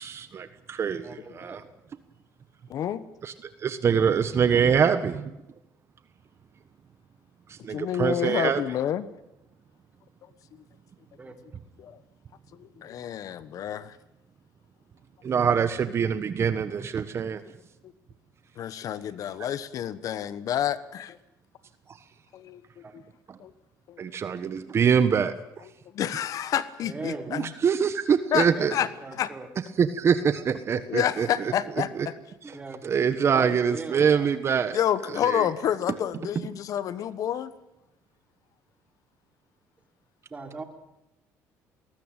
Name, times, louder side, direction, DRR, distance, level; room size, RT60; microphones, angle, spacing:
voice 1, 0.0-1.6 3.2-3.3 3.6-5.3 7.5-8.6 15.2-17.4 23.3-23.4 24.0-25.3 27.3-28.7 29.8-31.5 32.0-32.1 32.8-34.8 35.2-35.5, right 7 dB, 40° right, 12 dB, 1.3 m, -24 dB
voice 2, 1.0-1.6 11.2-11.3 22.8-22.9 26.8-27.3 28.4-29.5 32.4-33.0 33.3-34.3 40.3-40.6, right 3 dB, 25° right, 6 dB, 3.7 m, -38 dB
voice 3, 2.7-3.0 7.7-9.0 11.8-12.0 12.6-14.0 18.6-21.2 22.3-22.8 23.4-23.5 23.9-24.1 25.9-27.5 28.3-28.9 29.1-29.3 30.9-32.1 34.7-37.5, left 10 dB, 60° left, 15 dB, 1.2 m, -29 dB
20.5 x 19.5 x 9.1 m, 0.91 s
cardioid pair, 105°, 7 cm